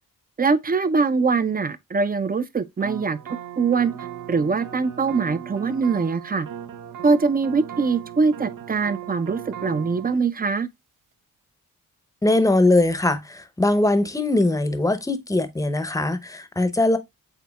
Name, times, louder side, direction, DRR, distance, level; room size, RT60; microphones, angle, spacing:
voice 1, 0.4-3.2 3.6-3.9 4.3-6.5 7.0-10.7, right 4 dB, 25° right, 0.5 m, -22 dB
sound 1, 2.8-10.2, right 10 dB, 70° right, 0.7 m, -37 dB
voice 2, 12.2-17.0, left 2 dB, 10° left, 0.7 m, -21 dB
8.0 x 2.8 x 2.3 m
cardioid pair, 70°, 33 cm